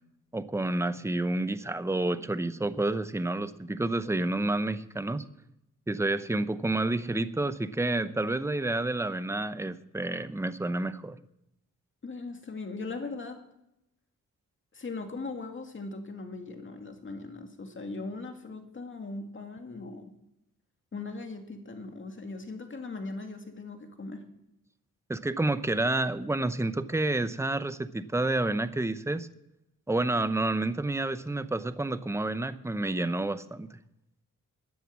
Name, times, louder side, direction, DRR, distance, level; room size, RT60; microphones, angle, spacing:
voice 1, 0.3-5.2 5.9-11.2 25.1-29.3 29.9-33.7, right 2 dB, 10° right, 13 dB, 0.7 m, -29 dB
voice 2, 12.0-13.4 14.7-20.1 20.9-24.2, left 3 dB, 35° left, 5 dB, 2.3 m, -39 dB
14.5 x 10.0 x 7.3 m, 0.85 s
wide cardioid pair, 105°, 33 cm